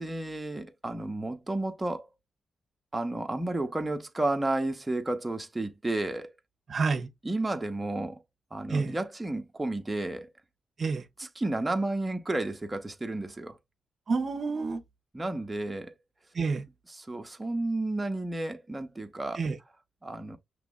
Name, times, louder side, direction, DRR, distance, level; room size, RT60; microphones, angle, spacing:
voice 1, 0.0-2.1 2.9-6.3 7.2-8.2 8.5-10.3 11.2-13.6 15.1-15.9 16.9-19.4 20.0-20.4, right 2 dB, 20° right, 0.9 m, -32 dB
voice 2, 6.7-7.1 8.7-8.9 10.8-11.0 14.1-14.8 16.3-16.6 19.4-19.6, right 4 dB, 55° right, 0.8 m, -28 dB
6.0 x 3.1 x 2.4 m
cardioid pair, 65°, 0 cm